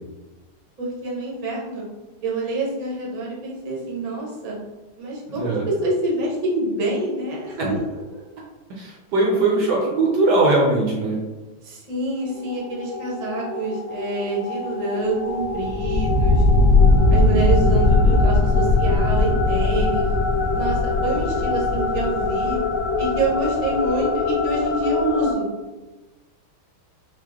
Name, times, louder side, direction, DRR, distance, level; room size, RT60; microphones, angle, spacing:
voice 1, 0.8-1.8 2.2-4.6 5.0-7.8 8.1-8.2 11.6-16.4 17.1-20.1 20.5-22.6 23.0-25.5, right 2 dB, 35° right, -5 dB, 0.7 m, -27 dB
voice 2, 5.4-5.7 7.6-7.7 8.7-11.2 18.0-18.2, right 2 dB, 65° right, -2 dB, 1.1 m, -20 dB
sound 1, 12.2-25.3, left 2 dB, 65° left, 1.1 m, -20 dB
4.5 x 2.1 x 3.6 m, 1.2 s
omnidirectional pair, 2.2 m